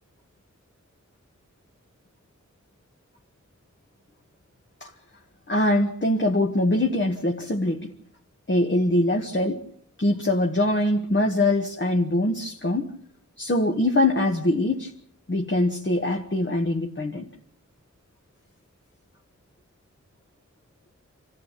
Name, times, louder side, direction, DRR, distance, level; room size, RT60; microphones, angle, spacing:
voice 1, 5.5-7.9 8.5-9.6 10.0-12.9 13.4-14.9 15.3-17.3, left 1 dB, 40° left, 2 dB, 1.6 m, -23 dB
26.0 x 14.5 x 7.5 m, 0.71 s
wide cardioid pair, 45°, 30 cm